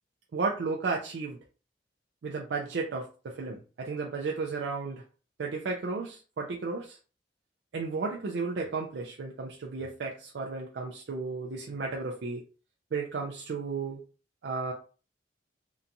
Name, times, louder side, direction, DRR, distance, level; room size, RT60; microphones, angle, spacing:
voice 1, 0.3-1.4 2.2-5.0 5.4-7.0 7.7-12.4 12.9-14.0 14.4-14.7, right 4 dB, 80° right, 0 dB, 0.4 m, -33 dB
2.8 x 2.2 x 2.5 m, 0.36 s
head